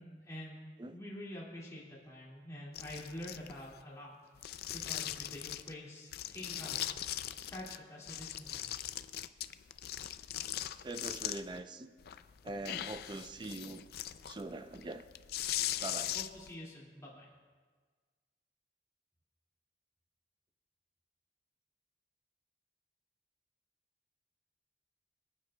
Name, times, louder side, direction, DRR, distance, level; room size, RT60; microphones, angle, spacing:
voice 1, 0.0-9.0 16.1-17.3, left 1 dB, 20° left, -6 dB, 2.1 m, -47 dB
sound 1, 2.7-3.8 4.4-5.7 6.1-7.8 8.1-11.6 12.0-16.5, left 12 dB, 60° left, 0.4 m, -40 dB
voice 2, 10.8-11.9 12.4-13.9 14.2-15.1 15.8-16.1, right 2 dB, 25° right, 10 dB, 0.5 m, -43 dB
26.5 x 9.3 x 2.2 m, 1.5 s
head